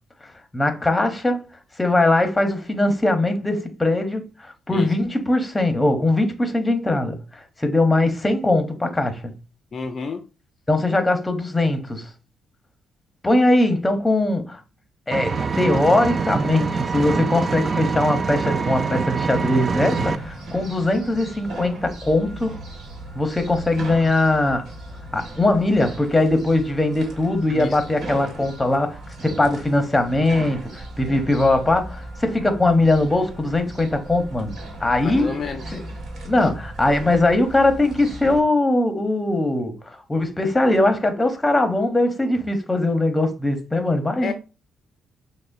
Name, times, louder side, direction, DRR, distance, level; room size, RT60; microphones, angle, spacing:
voice 1, 0.5-1.4 1.8-9.3 10.7-12.1 13.2-14.6 15.1-22.6 23.1-24.7 25.1-34.5 34.8-35.3 35.7-35.8 36.2-44.3, left 2 dB, 15° left, 0.8 m, -21 dB
voice 2, 9.7-10.2 27.5-27.8 28.4-28.5 35.0-35.8 36.4-36.5 44.2-44.3, left 4 dB, 45° left, 0.4 m, -31 dB
Engine, 15.1-20.1, right 5 dB, 40° right, 0.4 m, -24 dB
sound 1, 19.6-38.4, right 1 dB, 65° right, 1.4 m, -37 dB
6.0 x 2.1 x 2.6 m
cardioid pair, 90°, 0 cm